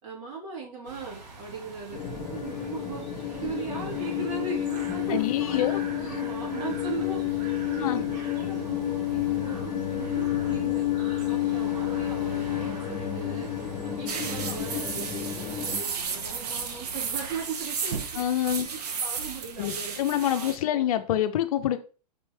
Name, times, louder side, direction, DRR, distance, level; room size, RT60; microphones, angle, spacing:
voice 1, 0.0-10.8 11.3-13.5 13.8-19.9 20.3-20.8, right 5 dB, 45° right, 2.5 m, -38 dB
sound 1, 0.8-17.4, right 3 dB, 90° right, 2.1 m, -45 dB
sound 2, 1.9-15.8, left 12 dB, 20° left, 1.5 m, -30 dB
voice 2, 5.1-5.8 7.8-8.0 18.2-18.7 19.6-21.8, left 11 dB, 60° left, 0.7 m, -26 dB
sound 3, 14.1-20.6, right 6 dB, 70° right, 1.0 m, -33 dB
5.1 x 3.1 x 3.3 m
hypercardioid pair, 140°, 21 cm